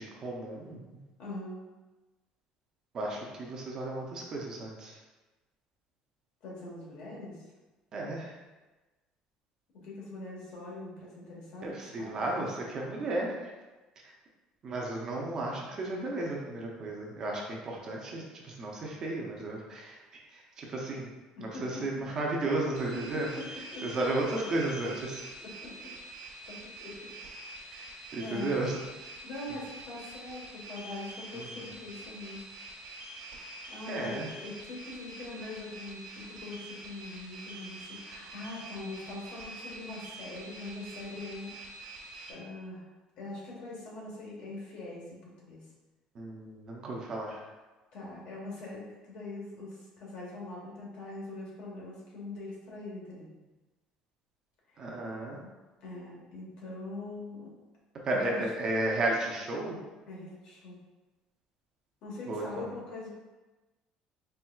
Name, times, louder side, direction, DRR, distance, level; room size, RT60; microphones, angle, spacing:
voice 1, 0.0-1.0 2.9-5.0 7.9-8.4 11.6-13.5 14.6-21.1 21.4-25.2 28.1-28.8 31.3-31.7 33.9-34.3 46.1-47.5 54.8-55.4 58.0-59.8 62.3-62.7, right 2 dB, 30° right, -2 dB, 0.6 m, -34 dB
voice 2, 1.2-1.6 6.4-7.4 9.7-12.5 21.4-22.0 23.1-23.4 23.7-23.8 25.6-25.9 26.4-27.1 27.6-28.5 29.2-32.4 33.7-41.5 42.3-42.9 43.2-45.6 47.9-53.3 54.7-54.8 55.8-57.5 58.2-58.4 60.1-60.8 62.0-63.1, left 2 dB, 55° left, -4 dB, 1.2 m, -42 dB
sound 1, 22.7-42.3, right 2 dB, 60° right, 1.1 m, -46 dB
4.4 x 3.3 x 2.3 m, 1.2 s
cardioid pair, 175°, 2 cm